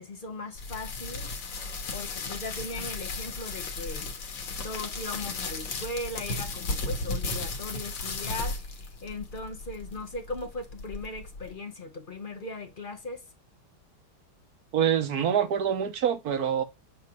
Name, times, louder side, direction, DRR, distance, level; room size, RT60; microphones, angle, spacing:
voice 1, 0.0-1.3 1.9-4.1 4.6-13.3, left 2 dB, 50° left, 0.6 m, -38 dB
sound 1, 0.5-11.5, left 3 dB, 75° left, 2.0 m, -35 dB
voice 2, 14.7-16.6, right 8 dB, 60° right, 1.2 m, -25 dB
7.7 x 2.9 x 4.7 m
omnidirectional pair, 2.1 m